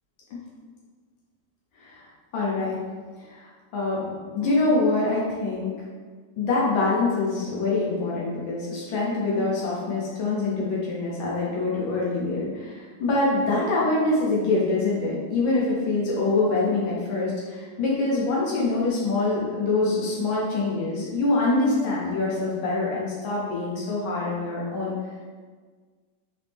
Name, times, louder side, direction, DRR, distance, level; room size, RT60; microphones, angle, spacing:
voice 1, 2.3-2.8 3.2-5.7 6.4-25.0, left 3 dB, 85° left, -5 dB, 1.6 m, -25 dB
4.6 x 3.0 x 3.4 m, 1.5 s
omnidirectional pair, 2.1 m